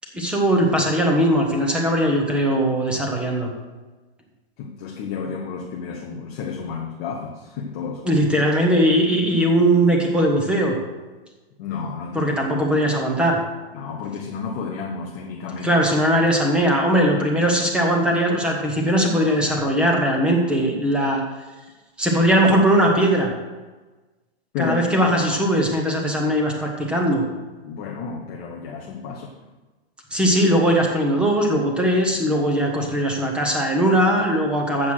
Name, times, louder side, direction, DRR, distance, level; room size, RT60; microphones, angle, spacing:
voice 1, 0.1-3.5 8.0-10.8 12.1-13.4 15.6-21.2 22.0-23.3 24.6-27.2 30.1-34.9, equal, 5° right, 1 dB, 0.8 m, -19 dB
voice 2, 4.6-8.2 11.6-12.3 13.7-15.8 16.6-16.8 24.5-25.0 27.6-29.3, left 5 dB, 15° left, 1 dB, 0.4 m, -31 dB
8.0 x 7.3 x 6.3 m, 1.2 s
supercardioid pair, 170°, 31 cm